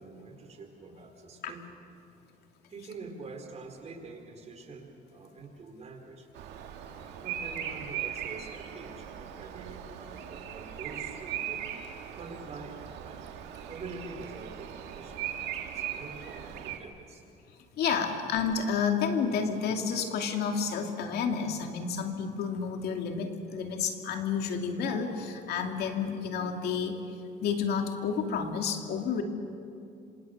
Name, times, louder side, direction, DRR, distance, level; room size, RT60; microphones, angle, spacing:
voice 1, 0.0-1.8 2.7-6.3 7.2-11.7 12.1-13.2 13.6-17.2, right 3 dB, 40° right, 4 dB, 4.3 m, -45 dB
Bird vocalization bird call bird song, 6.3-16.8, right 10 dB, 85° right, 1.9 m, -39 dB
voice 2, 17.8-26.9 27.4-29.2, left 6 dB, 70° left, 4 dB, 2.6 m, -30 dB
26.5 x 26.5 x 6.6 m, 2.6 s
cardioid pair, 110°, 17 cm